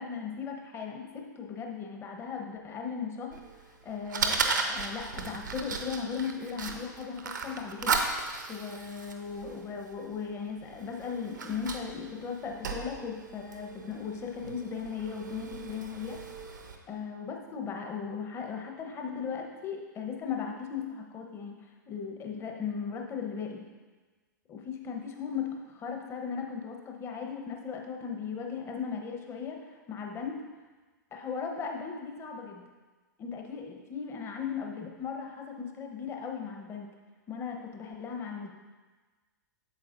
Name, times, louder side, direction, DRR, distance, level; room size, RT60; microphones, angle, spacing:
voice 1, 0.0-3.4 3.7-8.0 8.5-16.2 16.9-21.6 21.9-23.6 24.5-29.6 29.9-30.4 31.1-32.6 33.2-36.9 37.3-38.5, left 6 dB, 25° left, 2 dB, 1.0 m, -37 dB
Fire, 3.3-16.7, right 4 dB, 70° right, 0.8 m, -36 dB
8.5 x 7.4 x 2.6 m, 1.3 s
figure-of-eight pair, 100°, 11 cm